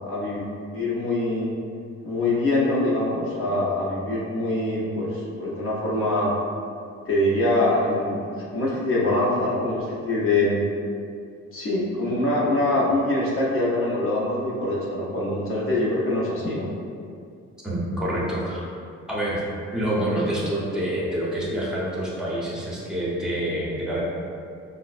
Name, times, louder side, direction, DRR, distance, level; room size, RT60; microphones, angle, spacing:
voice 1, 0.1-0.5 0.7-1.5 2.0-6.3 7.1-10.6 11.5-16.7, left 1 dB, 45° left, -6 dB, 0.7 m, -24 dB
voice 2, 17.6-18.6 19.1-19.4 19.7-24.0, right 1 dB, ahead, -5 dB, 0.8 m, -27 dB
4.4 x 2.1 x 2.4 m, 2.3 s
cardioid pair, 90°, 30 cm